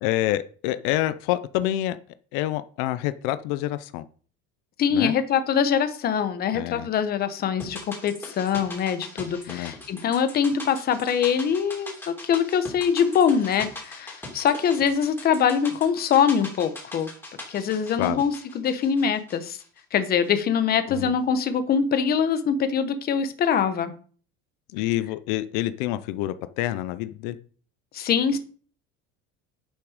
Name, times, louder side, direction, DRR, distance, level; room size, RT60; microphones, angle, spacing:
voice 1, 0.0-2.0 2.3-4.0 4.9-5.1 6.5-6.9 9.5-9.7 18.0-18.2 20.9-21.1 24.7-27.4, left 14 dB, 85° left, 0.7 m, -27 dB
voice 2, 4.8-17.1 17.5-19.6 19.9-23.9 27.9-28.4, left 7 dB, 30° left, 1.0 m, -23 dB
sound 1, 7.6-20.0 20.2-20.3, left 2 dB, 10° left, 3.1 m, -41 dB
10.0 x 6.0 x 5.0 m
cardioid pair, 165°, 30 cm